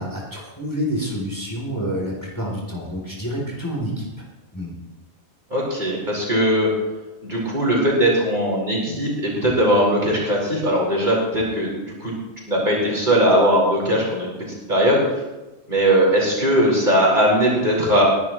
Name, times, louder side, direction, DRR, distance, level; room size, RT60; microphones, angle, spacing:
voice 1, 0.0-4.1 4.5-4.7, equal, 15° left, -3 dB, 3.7 m, -28 dB
voice 2, 5.5-6.7 7.2-12.1 12.5-14.3 14.7-15.0 15.7-18.0, equal, 45° right, -5 dB, 5.3 m, -19 dB
21.0 x 12.0 x 3.2 m, 1.1 s
omnidirectional pair, 1.2 m